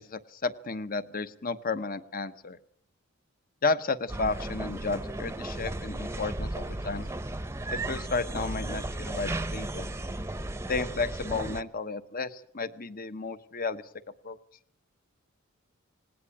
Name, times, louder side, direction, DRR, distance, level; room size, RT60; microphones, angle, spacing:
voice 1, 0.0-2.6 3.6-7.1 7.7-9.9 10.7-13.8 14.2-14.4, left 4 dB, 45° left, 13 dB, 1.1 m, -32 dB
sound 1, 4.1-11.6, right 2 dB, 15° right, 0.8 m, -35 dB
19.0 x 18.5 x 8.7 m, 0.64 s
head